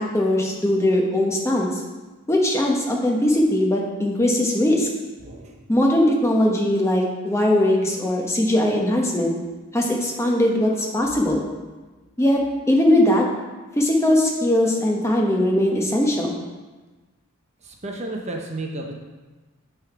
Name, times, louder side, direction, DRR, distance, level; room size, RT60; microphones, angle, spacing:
voice 1, 0.0-1.8 2.3-4.9 5.7-9.3 9.7-11.4 12.2-12.4 12.7-13.3 13.8-16.4, left 1 dB, 15° left, -1 dB, 0.9 m, -20 dB
voice 2, 17.8-18.9, right 2 dB, 30° right, 1 dB, 0.7 m, -31 dB
8.5 x 3.6 x 4.5 m, 1.2 s
head